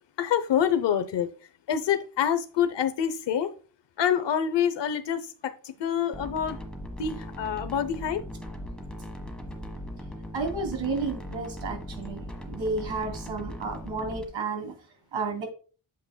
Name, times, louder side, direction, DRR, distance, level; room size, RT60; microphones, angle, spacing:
voice 1, 0.2-1.3 1.7-3.5 4.0-6.6 7.0-8.2, left 9 dB, 70° left, 10 dB, 0.8 m, -26 dB
sound 1, 6.1-14.2, equal, ahead, 1.4 m, -39 dB
voice 2, 10.3-14.8 15.1-15.4, right 4 dB, 80° right, 4 dB, 2.9 m, -32 dB
8.5 x 7.3 x 2.2 m, 0.38 s
wide cardioid pair, 140°, 44 cm